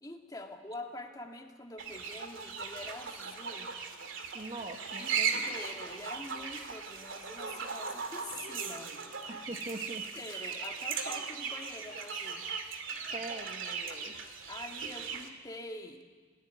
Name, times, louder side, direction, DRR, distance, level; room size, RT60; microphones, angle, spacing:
voice 1, 0.0-3.7 5.0-5.1 5.4-8.9 10.1-12.4 14.5-16.0, left 2 dB, 20° left, 2 dB, 2.1 m, -45 dB
sound 1, 1.8-15.3, right 6 dB, 70° right, 2.6 m, -38 dB
voice 2, 4.3-5.5 9.3-10.0 13.1-14.1, right 2 dB, 30° right, 4 dB, 1.7 m, -42 dB
28.5 x 18.0 x 9.3 m, 1.5 s
head